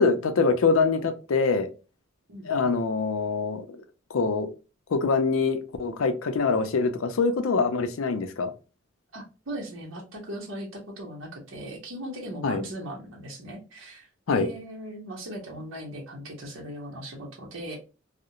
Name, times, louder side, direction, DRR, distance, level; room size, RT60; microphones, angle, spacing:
voice 1, 0.0-1.7 2.5-3.7 4.1-4.5 4.9-8.5 12.4-12.6 14.3-14.5, left 4 dB, 80° left, 8 dB, 0.5 m, -24 dB
voice 2, 2.3-2.7 9.1-17.8, equal, 70° right, -1 dB, 0.8 m, -38 dB
2.4 x 2.0 x 2.8 m, 0.32 s
head